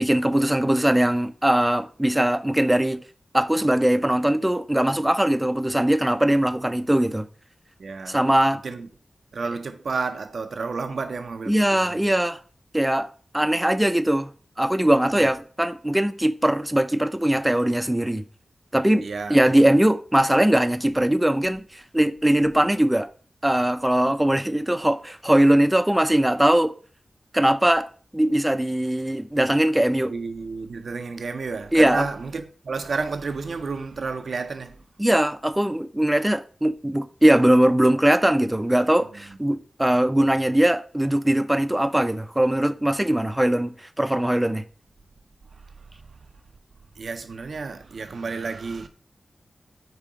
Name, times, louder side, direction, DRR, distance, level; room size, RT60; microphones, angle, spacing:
voice 1, 0.0-3.0 3.3-7.3 8.1-8.6 11.5-12.4 12.7-13.1 13.3-14.3 14.6-18.2 18.7-19.0 19.3-23.1 23.4-26.7 27.3-27.9 28.1-30.1 31.7-32.1 35.0-44.6, right 1 dB, 10° right, 0.4 m, -20 dB
voice 2, 7.8-8.2 8.5-8.9 9.3-12.1 15.0-15.3 19.0-19.4 30.1-34.8 39.0-39.4 45.5-46.2 47.0-48.9, right 4 dB, 80° right, 0.5 m, -32 dB
4.8 x 2.8 x 3.8 m
cardioid pair, 45°, 0 cm